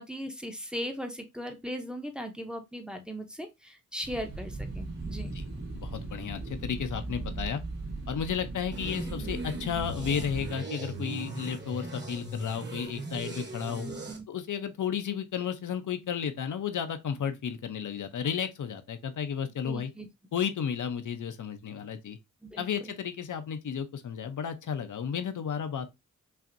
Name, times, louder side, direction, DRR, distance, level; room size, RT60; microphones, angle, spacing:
voice 1, 0.0-5.4 13.7-14.2 19.6-20.1 22.4-22.9, equal, 5° right, 0.6 m, -38 dB
sound 1, 4.0-10.5, right 2 dB, 60° right, 2.3 m, -38 dB
voice 2, 5.7-7.6 8.1-13.9 14.3-19.9 20.3-22.2 22.6-25.9, left 7 dB, 85° left, 0.6 m, -33 dB
sound 2, 8.7-14.2, right 2 dB, 35° right, 1.1 m, -38 dB
5.7 x 2.6 x 2.5 m
wide cardioid pair, 160°, 30 cm